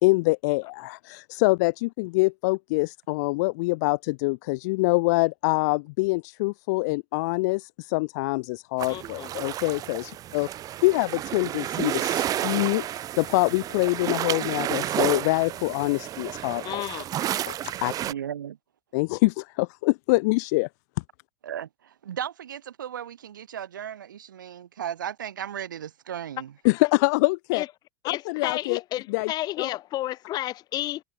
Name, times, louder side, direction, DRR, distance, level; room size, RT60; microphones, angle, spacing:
voice 1, 0.0-10.5 10.8-16.8 17.3-17.9 18.9-20.7 26.6-27.6 28.0-28.8 29.1-29.3 29.6-29.7, left 25 dB, 60° left, 6.4 m, -25 dB
sound 1, 8.8-18.1, right 12 dB, 35° right, 4.5 m, -31 dB
voice 2, 8.9-9.3 16.6-17.0 27.5-27.7 28.0-31.0, left 15 dB, 40° left, 6.1 m, -31 dB
voice 3, 18.1-18.6 21.4-26.5, right 9 dB, 85° right, 5.6 m, -36 dB
hypercardioid pair, 110°, 10 cm